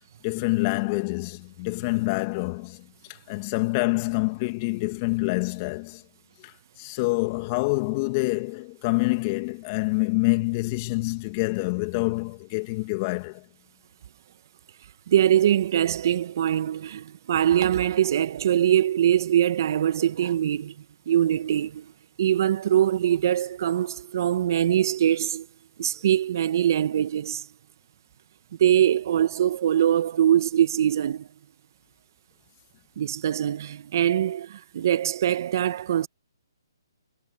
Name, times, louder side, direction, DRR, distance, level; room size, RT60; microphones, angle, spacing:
voice 1, 0.2-6.0 6.4-13.4, left 26 dB, 30° left, 2.3 m, -27 dB
voice 2, 15.1-20.7 21.1-21.9 22.2-25.5 25.8-27.5 28.6-31.3 33.0-36.1, right 10 dB, 50° right, 1.1 m, -23 dB
hypercardioid pair, 145°, 2 cm